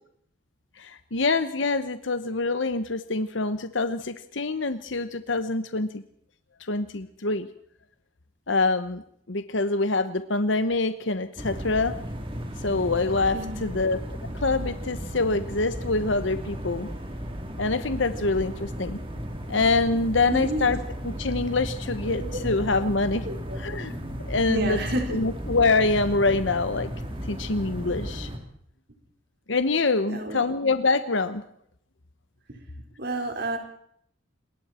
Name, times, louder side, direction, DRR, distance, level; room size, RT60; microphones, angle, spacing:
voice 1, 0.8-6.0 6.7-7.5 8.5-9.0 9.3-11.9 12.6-14.0 14.4-16.9 17.6-19.0 19.5-20.8 21.0-23.2 23.6-23.9 24.3-24.8 25.1-26.9 27.3-28.3 29.5-31.4, left 3 dB, 70° left, 11 dB, 1.1 m, -25 dB
sound 1, 11.4-28.4, equal, 25° right, 3.3 m, -35 dB
voice 2, 13.3-13.8 20.3-20.7 22.1-22.4 23.2-23.6 24.5-25.2 30.1-30.5 32.5-32.6 33.0-33.6, right 1 dB, 55° right, 4 dB, 4.5 m, -31 dB
27.0 x 21.5 x 4.4 m, 0.68 s
head